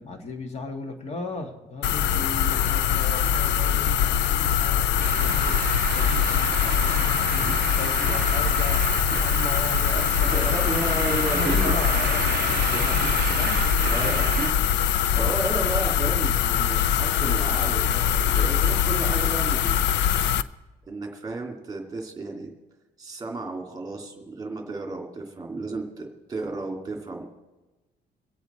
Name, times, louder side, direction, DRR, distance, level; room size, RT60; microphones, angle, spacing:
voice 1, 0.0-5.6 5.9-8.8 9.2-10.7 11.1-14.5, left 3 dB, 35° left, 4 dB, 1.8 m, -37 dB
sound 1, 1.8-20.4, left 9 dB, 70° left, 0.5 m, -23 dB
Traffic noise roadway noise, 5.0-14.5, right 13 dB, 60° right, 0.4 m, -31 dB
voice 2, 10.3-11.7 12.7-13.3 13.8-14.5 15.1-19.9 20.9-22.5 23.0-27.2, right 2 dB, 20° right, 2 dB, 2.4 m, -33 dB
23.5 x 8.4 x 4.2 m, 1.1 s
cardioid pair, 130°, 18 cm